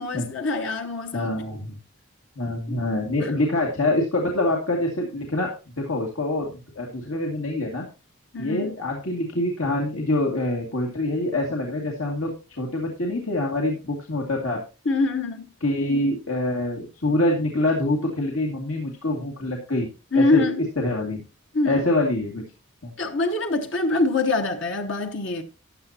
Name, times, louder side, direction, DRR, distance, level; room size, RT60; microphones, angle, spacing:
voice 1, 0.0-1.3 2.7-2.8 3.2-3.3 8.3-8.8 14.8-15.5 20.1-20.6 21.5-21.8 23.0-25.4, left 2 dB, 60° left, 1.1 m, -24 dB
voice 2, 1.1-1.8 2.4-7.9 8.4-14.6 15.6-19.9 20.2-20.4 20.8-21.2 21.6-22.4 22.8-22.9, left 1 dB, 80° left, 2.3 m, -25 dB
14.0 x 10.0 x 2.9 m
head